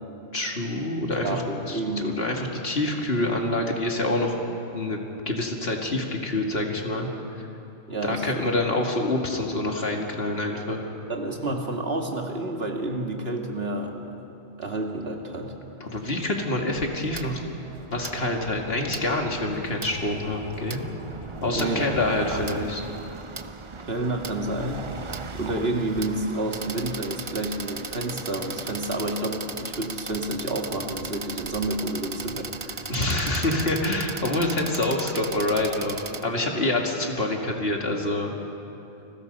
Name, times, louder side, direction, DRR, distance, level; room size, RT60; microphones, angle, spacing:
voice 1, 0.3-1.4 1.7-4.4 4.7-7.1 8.0-10.9 15.8-17.4 17.9-20.8 21.4-22.8 32.9-38.3, left 2 dB, 55° left, 1 dB, 2.5 m, -26 dB
voice 2, 1.2-2.2 7.9-8.5 11.1-14.2 14.6-15.5 21.5-22.1 22.3-22.5 23.9-33.0, right 1 dB, 55° right, 2 dB, 2.3 m, -30 dB
sound 1, 16.8-36.2, right 4 dB, 30° right, 0.7 m, -37 dB
29.5 x 20.5 x 5.4 m, 2.9 s
omnidirectional pair, 1.2 m